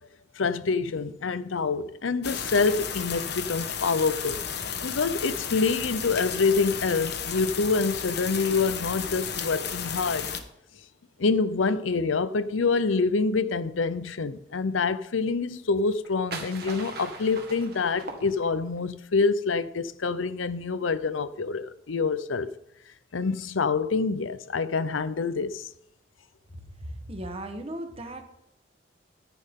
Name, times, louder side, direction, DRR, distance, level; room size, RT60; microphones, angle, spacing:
voice 1, 0.4-4.4 4.8-10.3 11.2-22.5 23.1-25.6, left 4 dB, 90° left, 0.7 m, -26 dB
sound 1, 2.2-10.4, left 7 dB, 55° left, 1.1 m, -33 dB
sound 2, 15.8-18.8, right 3 dB, 55° right, 1.8 m, -40 dB
voice 2, 26.6-28.2, right 1 dB, 30° right, 1.2 m, -37 dB
13.5 x 10.0 x 3.7 m
head